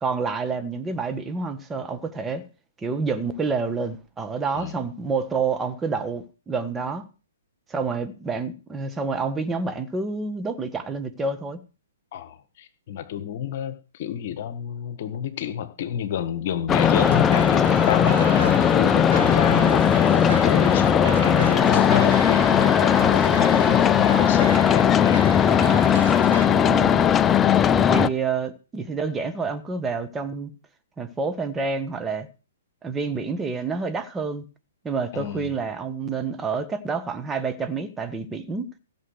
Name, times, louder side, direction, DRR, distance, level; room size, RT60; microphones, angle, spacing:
voice 1, 0.0-2.4 2.8-7.1 7.7-11.6 26.4-27.2 27.7-30.5 31.0-32.3 32.8-34.4 34.8-38.7, right 4 dB, 15° right, 1.6 m, -28 dB
voice 2, 12.1-25.7 27.2-27.6 35.1-35.5, left 9 dB, 50° left, 1.6 m, -30 dB
sound 1, 16.7-28.1, left 8 dB, 20° left, 0.6 m, -18 dB
sound 2, 16.8-26.5, right 6 dB, 55° right, 2.9 m, -34 dB
15.5 x 6.6 x 6.7 m
figure-of-eight pair, 120°, 0 cm